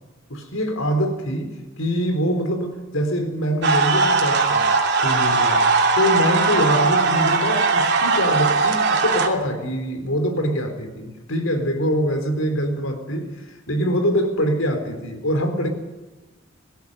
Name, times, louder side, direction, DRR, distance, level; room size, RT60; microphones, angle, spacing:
voice 1, 0.3-4.7 5.0-5.6 6.0-15.7, equal, 90° left, 5 dB, 4.2 m, -24 dB
sound 1, 3.6-9.3, right 4 dB, 55° right, 2.9 m, -19 dB
19.0 x 15.0 x 9.8 m, 1.1 s
head